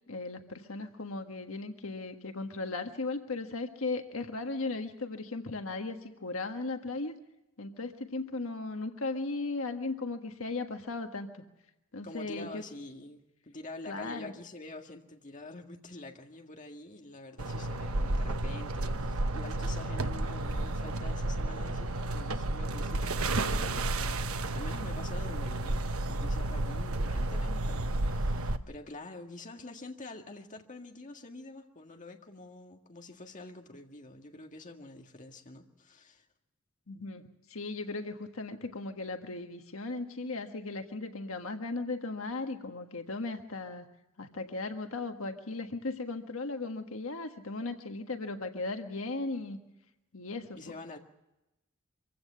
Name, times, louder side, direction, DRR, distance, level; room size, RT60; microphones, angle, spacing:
voice 1, 0.1-7.1 7.6-11.4 11.9-12.6 13.9-14.3 36.9-37.2 37.5-43.9 44.2-49.6 50.1-50.7, left 3 dB, 75° left, 5 dB, 1.6 m, -37 dB
voice 2, 12.0-36.2 50.6-51.0, left 2 dB, 40° left, 3 dB, 1.9 m, -47 dB
sound 1, 17.4-28.6, right 2 dB, 90° right, 1.0 m, -32 dB
25.0 x 16.0 x 6.8 m, 0.96 s
head